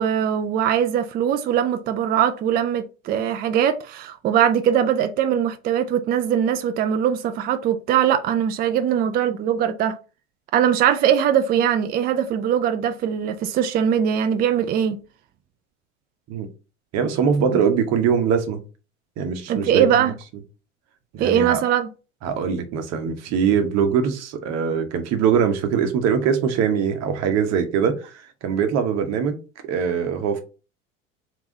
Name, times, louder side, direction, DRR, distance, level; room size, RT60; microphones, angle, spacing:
voice 1, 0.0-10.0 10.5-15.0 19.5-20.1 21.2-21.9, right 9 dB, 25° right, 0.4 m, -21 dB
voice 2, 16.9-18.6 19.2-20.1 21.1-21.6 22.2-28.1 28.4-30.4, right 7 dB, 45° right, 1.0 m, -22 dB
3.5 x 3.1 x 3.8 m
figure-of-eight pair, 75°, 38 cm